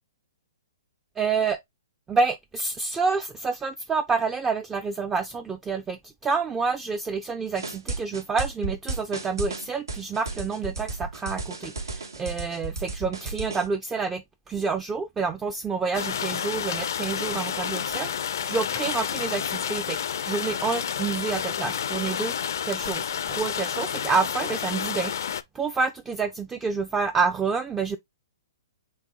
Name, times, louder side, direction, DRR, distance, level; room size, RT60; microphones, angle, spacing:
voice 1, 1.2-1.6 2.1-22.4 22.6-25.3 25.5-28.0, right 4 dB, 15° right, 0.3 m, -28 dB
sound 1, 7.5-13.7, right 3 dB, 90° right, 1.3 m, -33 dB
sound 2, 15.9-25.4, left 8 dB, 65° left, 0.4 m, -30 dB
4.6 x 3.5 x 2.8 m
hypercardioid pair, 130°, 2 cm